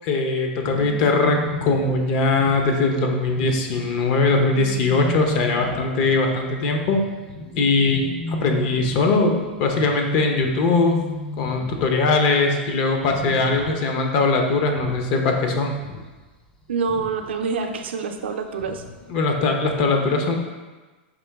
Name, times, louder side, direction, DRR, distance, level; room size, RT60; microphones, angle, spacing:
voice 1, 0.0-7.0 7.6-11.0 11.4-15.7 19.1-20.4, left 3 dB, 55° left, 3 dB, 0.7 m, -21 dB
sound 1, 0.6-12.3 12.6-12.8 13.0-14.0 14.3-15.4 15.7-17.3 18.6-19.0 19.4-19.5, left 2 dB, 15° left, 0.4 m, -34 dB
voice 2, 16.7-18.8, right 5 dB, 90° right, 5 dB, 0.4 m, -26 dB
5.1 x 2.9 x 3.4 m, 1.3 s
hypercardioid pair, 125°, 6 cm